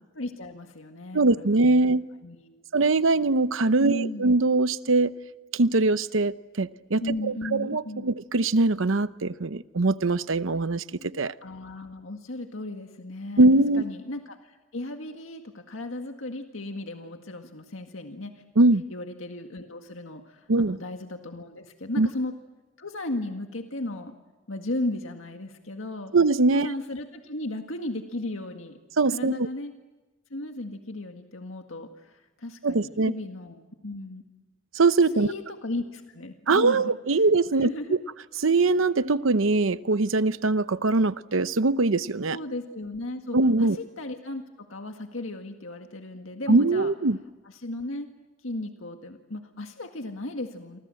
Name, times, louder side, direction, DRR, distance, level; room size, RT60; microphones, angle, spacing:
voice 1, 0.1-1.9 2.2-2.6 3.8-4.3 7.0-8.1 11.4-13.5 13.8-18.3 18.9-22.3 22.8-24.1 24.5-26.1 26.5-28.8 29.1-29.7 30.3-34.2 35.1-36.9 37.5-38.0 42.3-46.9 47.4-48.1 48.4-50.8, left 1 dB, 85° left, 5 dB, 1.9 m, -35 dB
voice 2, 1.1-2.0 2.7-5.1 5.5-10.8 11.2-11.3 13.4-13.8 18.6-18.8 20.5-20.8 22.0-22.1 26.1-26.7 29.0-29.5 32.6-33.1 34.7-35.3 36.5-37.7 38.4-42.4 43.3-43.8 46.5-47.2, right 3 dB, 80° right, 14 dB, 0.8 m, -22 dB
29.0 x 24.5 x 7.7 m, 1.1 s
head